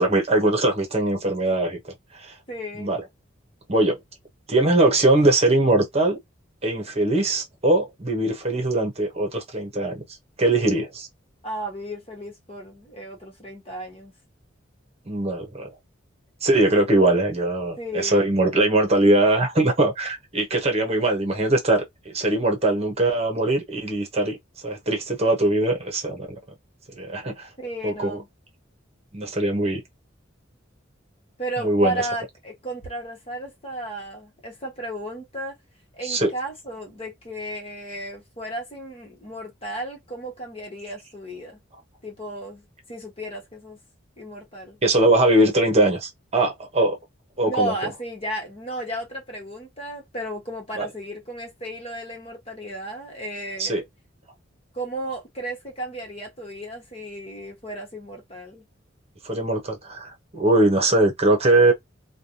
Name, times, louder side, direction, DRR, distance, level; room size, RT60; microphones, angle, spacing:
voice 1, 0.0-1.8 2.1-2.3 2.8-3.0 3.7-4.0 4.5-6.2 6.6-10.0 10.4-11.1 15.1-15.7 16.4-24.4 24.6-26.3 26.9-27.5 27.8-28.2 29.1-29.8 31.6-32.0 36.0-36.3 44.8-47.0 47.4-47.7 50.8-50.9 53.6-53.8 59.2-61.7, right 2 dB, 35° right, 1.0 m, -21 dB
voice 2, 2.5-3.0 11.4-14.1 17.8-18.3 27.6-28.3 31.4-35.6 35.9-41.6 42.0-43.8 44.2-44.8 47.4-53.7 54.7-58.7, right 1 dB, 30° left, 1.3 m, -34 dB
3.4 x 2.3 x 2.7 m
head